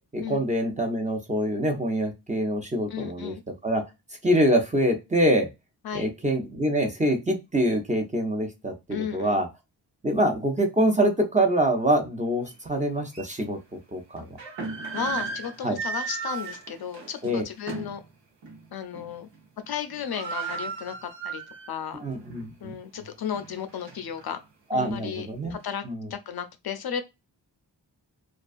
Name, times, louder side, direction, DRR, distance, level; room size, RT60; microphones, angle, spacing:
voice 1, 0.1-3.3 3.6-3.8 4.2-5.5 5.9-8.7 9.1-9.5 10.0-13.6 13.9-14.4 15.6-15.8 17.2-17.4 22.0-22.7 24.7-25.6 25.8-26.1, right 1 dB, 15° right, 0.6 m, -25 dB
voice 2, 2.9-3.4 5.8-6.1 8.9-9.4 14.2-14.3 14.9-18.0 18.7-19.3 19.7-21.4 21.7-22.0 22.6-24.4 24.7-25.8 26.1-27.0, left 8 dB, 60° left, 0.5 m, -34 dB
sound 1, 12.5-12.6 13.1-13.2 14.2-18.0 18.4-18.6 18.9-19.4 19.6-19.7 19.9-21.9 22.3-22.4 23.0-24.3, right 5 dB, 85° right, 0.9 m, -35 dB
2.4 x 2.3 x 2.4 m
cardioid pair, 70°, 43 cm